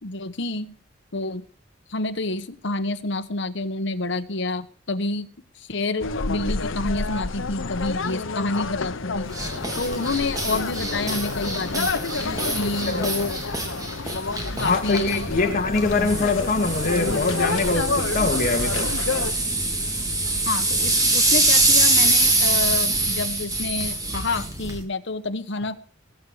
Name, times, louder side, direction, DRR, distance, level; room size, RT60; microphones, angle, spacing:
voice 1, 0.0-0.8 1.1-1.4 1.9-5.3 5.6-9.3 9.8-11.9 12.5-13.4 14.6-15.6 20.4-25.8, left 2 dB, 65° left, 1.2 m, -28 dB
sound 1, 6.0-19.3, left 4 dB, 85° left, 0.9 m, -29 dB
sound 2, 9.3-24.8, right 2 dB, 20° right, 2.9 m, -24 dB
voice 2, 14.6-18.9, left 3 dB, 45° left, 2.3 m, -23 dB
21.0 x 8.5 x 5.0 m
head